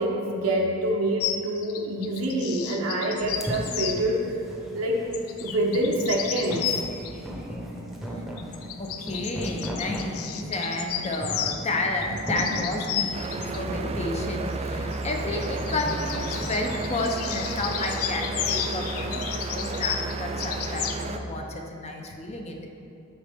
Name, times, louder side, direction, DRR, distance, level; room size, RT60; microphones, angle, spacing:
voice 1, 0.0-4.2 4.7-5.0 5.4-6.6, right 1 dB, 80° right, -1 dB, 0.9 m, -26 dB
sound 1, 1.2-4.0 5.1-7.1 8.4-11.6 12.0-13.6 14.9-21.1, left 9 dB, 85° left, 0.4 m, -33 dB
sound 2, 3.2-19.5, equal, ahead, 0.9 m, -37 dB
voice 2, 8.8-22.7, left 2 dB, 30° left, 2 dB, 0.7 m, -31 dB
sound 3, 13.1-21.2, right 3 dB, 30° right, 0.4 m, -32 dB
12.5 x 4.2 x 3.5 m, 2.7 s
head